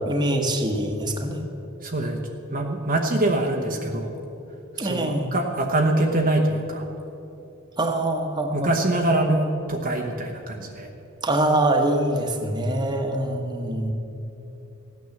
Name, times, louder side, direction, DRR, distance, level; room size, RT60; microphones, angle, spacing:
voice 1, 0.0-1.4 3.7-4.0 4.8-5.3 7.8-8.7 11.2-13.9, right 1 dB, 20° right, 3 dB, 1.3 m, -24 dB
voice 2, 1.8-2.2 2.5-4.1 4.8-6.9 8.5-10.9, right 1 dB, 40° right, 1 dB, 1.0 m, -24 dB
15.5 x 9.5 x 7.2 m, 2.9 s
head